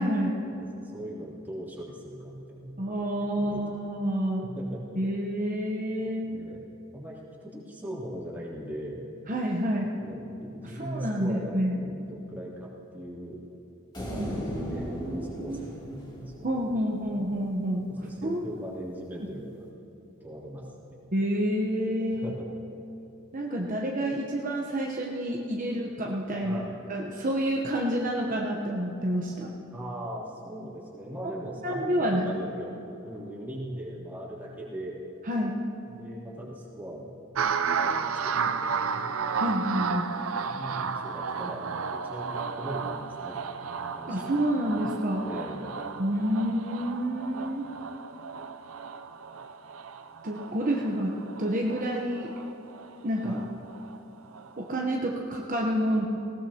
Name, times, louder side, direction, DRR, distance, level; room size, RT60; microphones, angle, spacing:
voice 1, 0.0-0.4 2.8-4.5 5.0-6.3 9.3-10.0 10.6-11.8 14.2-14.3 14.6-15.6 16.4-18.6 21.1-22.4 23.3-26.6 26.9-29.5 31.6-32.3 35.3-35.6 39.3-40.1 44.1-45.3 46.0-47.7 50.2-52.3 53.0-53.4 54.6-56.1, equal, 40° right, -2 dB, 1.0 m, -29 dB
voice 2, 0.5-2.8 3.3-3.6 4.4-5.2 6.2-6.7 6.9-9.1 10.0-13.4 14.1-16.5 17.9-19.6 20.2-20.9 22.1-22.5 26.4-26.8 29.7-32.7 33.0-35.0 35.9-37.2 37.6-39.2 40.4-43.3 43.9-44.3 45.2-45.8 53.2-53.4, right 1 dB, 10° right, -7 dB, 3.0 m, -40 dB
sound 1, 13.9-17.3, equal, 20° left, 2.8 m, -37 dB
sound 2, 37.4-54.0 54.3-54.8, right 6 dB, 80° right, 0.6 m, -33 dB
19.5 x 18.0 x 2.9 m, 2.9 s
head